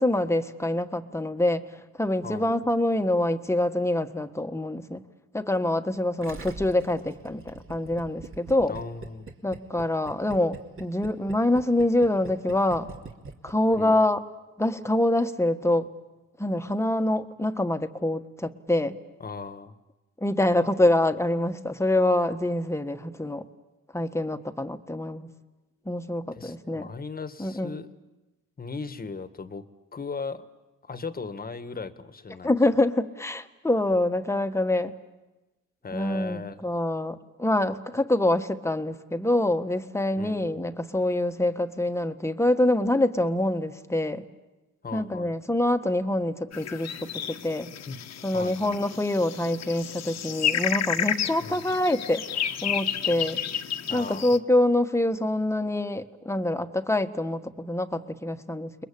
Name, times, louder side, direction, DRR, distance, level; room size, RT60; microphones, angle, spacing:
voice 1, 0.0-1.7 2.0-5.0 5.3-8.8 9.4-12.9 13.4-14.2 14.6-15.9 16.4-19.0 20.2-23.4 23.9-25.3 25.8-26.9 27.4-27.8 32.4-34.9 35.9-44.2 44.9-46.9 47.3-47.7 48.2-53.4 53.9-58.8, left 1 dB, 10° left, 8 dB, 1.5 m, -25 dB
voice 2, 2.2-2.6 8.7-9.3 13.8-14.0 19.2-19.7 26.3-27.9 28.6-29.6 29.9-30.5 30.8-32.5 35.8-36.6 40.2-40.5 44.8-45.3 46.7-47.0 47.9-48.0 48.3-48.8 51.4-51.7 53.9-54.4, left 4 dB, 30° left, 11 dB, 1.6 m, -37 dB
Gurgling, 6.2-13.8 14.0-14.1, right 3 dB, 45° right, 2.8 m, -42 dB
sound 1, 46.5-54.4, left 9 dB, 60° left, 1.4 m, -31 dB
30.0 x 21.5 x 8.5 m, 1.1 s
cardioid pair, 90°, 30 cm